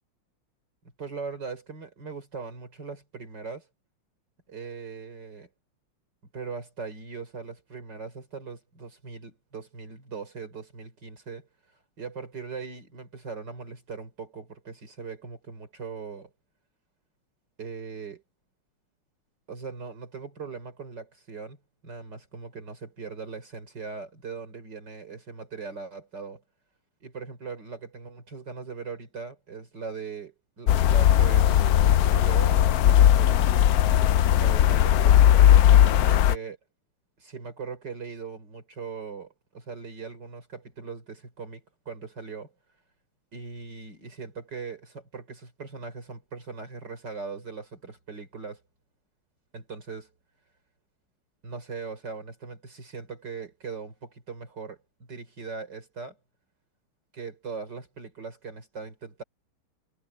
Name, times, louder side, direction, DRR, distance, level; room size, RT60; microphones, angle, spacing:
voice 1, 1.0-3.7 4.5-5.5 6.3-11.5 12.0-16.3 17.6-18.2 19.5-21.6 21.8-26.4 27.0-33.7 34.3-35.2 36.1-36.6 37.2-42.5 43.3-48.6 49.5-50.1 51.4-54.8 55.1-56.2 57.1-59.2, right 5 dB, 55° right, 4.6 m, -40 dB
sound 1, 30.7-36.4, left 11 dB, 85° left, 0.8 m, -18 dB
omnidirectional pair, 2.3 m